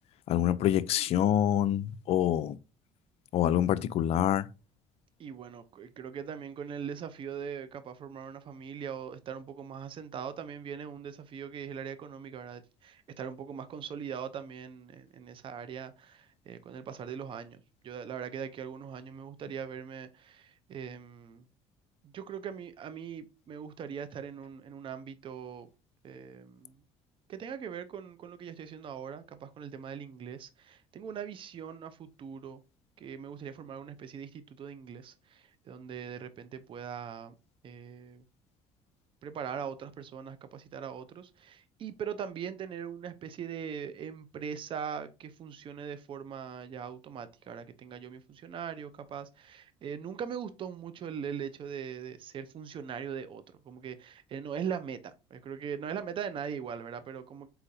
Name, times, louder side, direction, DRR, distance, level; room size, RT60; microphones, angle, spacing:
voice 1, 0.3-2.6 3.3-4.5, left 11 dB, 60° left, 0.4 m, -26 dB
voice 2, 5.2-21.4 22.0-25.7 26.0-26.8 27.3-32.6 33.0-37.3 37.6-38.2 39.2-57.5, right 7 dB, 45° right, 0.6 m, -41 dB
4.2 x 3.9 x 2.7 m
supercardioid pair, 95°, 12 cm